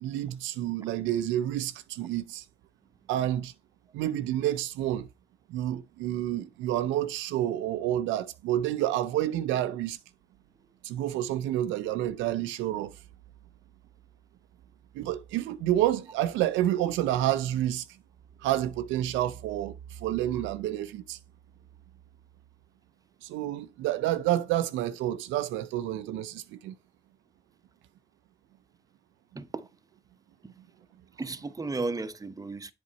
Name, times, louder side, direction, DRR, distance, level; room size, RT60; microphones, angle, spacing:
voice 1, 0.0-2.4 3.1-3.5 3.9-5.1 5.5-10.0 10.8-12.9 14.9-17.9 18.4-21.2 23.2-26.7, right 13 dB, 85° right, 0.5 m, -29 dB
voice 2, 29.3-29.7 30.4-30.5 31.2-32.7, right 3 dB, 20° right, 0.8 m, -34 dB
7.7 x 4.3 x 4.0 m
supercardioid pair, 65°, 19 cm